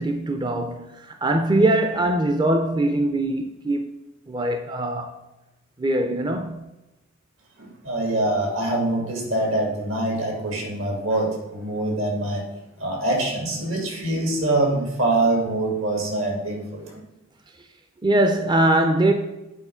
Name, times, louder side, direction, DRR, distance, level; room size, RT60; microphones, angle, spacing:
voice 1, 0.0-3.9 4.3-5.2 5.8-6.7 10.7-10.8 16.9-17.0 18.0-19.1, right 1 dB, 20° right, 0.5 m, -22 dB
voice 2, 7.6-12.4 12.8-16.9, right 2 dB, 80° right, 2.3 m, -24 dB
8.3 x 4.3 x 5.6 m
head